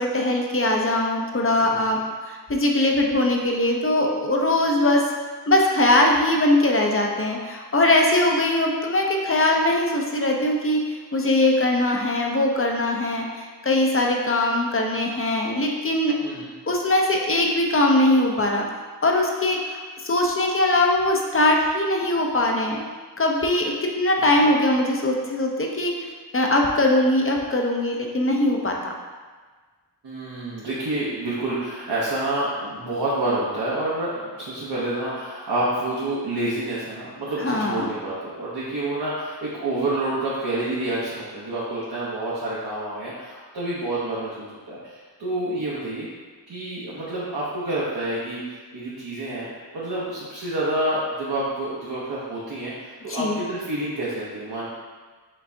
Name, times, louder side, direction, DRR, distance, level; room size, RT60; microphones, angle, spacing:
voice 1, 0.0-2.0 2.3-5.0 5.5-18.6 19.0-22.8 23.2-26.1 26.3-28.9 37.4-37.9 53.1-53.4, left 1 dB, 35° left, 1 dB, 0.6 m, -21 dB
voice 2, 16.2-16.5 24.2-24.3 30.0-46.1 46.5-49.5 49.7-54.7, right 1 dB, 70° right, -8 dB, 0.9 m, -28 dB
5.1 x 3.3 x 2.7 m, 1.4 s
wide cardioid pair, 70°, 41 cm